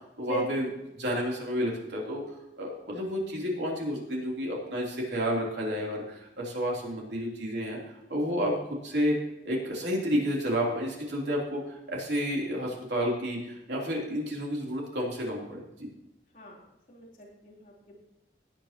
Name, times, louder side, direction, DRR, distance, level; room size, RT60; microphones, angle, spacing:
voice 1, 0.2-0.7 0.9-2.2 2.6-7.8 8.1-9.2 9.4-15.9, equal, 80° right, -2 dB, 3.4 m, -30 dB
voice 2, 16.9-18.0, right 2 dB, 45° left, -4 dB, 3.8 m, -38 dB
17.5 x 9.1 x 3.0 m, 0.87 s
head